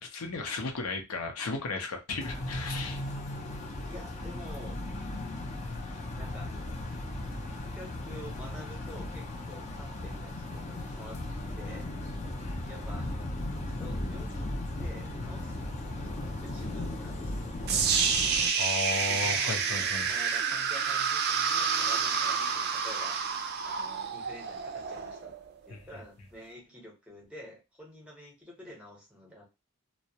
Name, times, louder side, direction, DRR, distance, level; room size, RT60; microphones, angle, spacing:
voice 1, 0.0-3.0 12.4-12.6 18.6-20.1 25.7-25.8, left 3 dB, 75° left, 0.6 m, -35 dB
sound 1, 2.2-18.5, left 1 dB, 30° left, 0.4 m, -37 dB
voice 2, 3.9-4.8 6.1-6.5 7.6-11.2 11.5-11.9 12.7-13.1 13.8-14.5 14.8-17.6 19.0-23.2 23.6-25.3 25.7-29.5, equal, 5° right, 0.8 m, -49 dB
sound 2, 17.7-25.7, right 6 dB, 45° right, 0.4 m, -29 dB
2.2 x 2.0 x 2.7 m
head